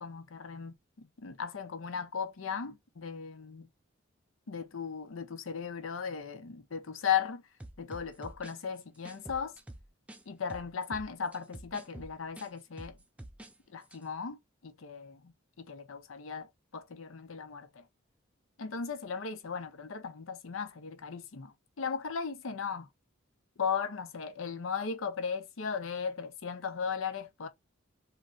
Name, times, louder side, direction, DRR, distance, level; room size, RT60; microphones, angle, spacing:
voice 1, 0.0-3.7 4.5-7.4 7.8-9.5 10.3-13.0 13.7-17.9 18.6-22.9 23.6-27.5, left 6 dB, 80° left, 0.6 m, -37 dB
sound 1, 7.6-10.2 10.5-13.5 13.8-14.0, right 1 dB, 5° right, 0.3 m, -48 dB
2.9 x 2.4 x 2.5 m
head